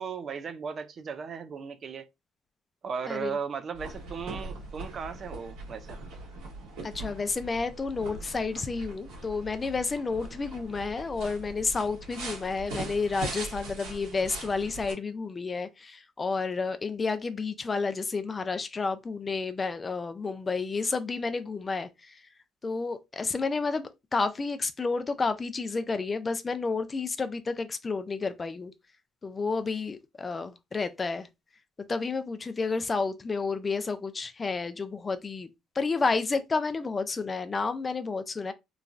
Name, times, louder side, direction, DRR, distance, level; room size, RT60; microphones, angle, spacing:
voice 1, 0.0-2.1 2.8-6.0, right 6 dB, 45° right, 0.4 m, -36 dB
voice 2, 3.1-3.4 6.8-22.2 22.6-28.7 29.2-31.3 31.9-35.5 35.8-38.5, left 4 dB, 30° left, 0.4 m, -31 dB
sound 1, 3.7-14.9, right 2 dB, 80° right, 1.4 m, -41 dB
3.0 x 2.2 x 2.5 m
supercardioid pair, 85°, 0 cm